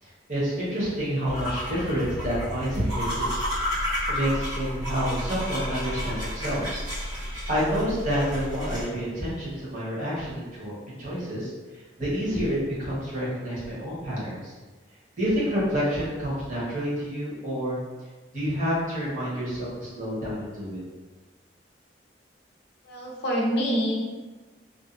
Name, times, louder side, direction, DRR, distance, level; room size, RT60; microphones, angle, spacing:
voice 1, 0.0-3.2 4.1-6.8 7.1-14.5 15.2-17.8 18.3-20.8, equal, 40° right, -7 dB, 0.9 m, -29 dB
sound 1, 1.3-8.9, equal, 90° right, 1.2 m, -31 dB
voice 2, 22.9-23.9, equal, 60° left, -2 dB, 0.5 m, -26 dB
2.6 x 2.3 x 2.4 m, 1.3 s
head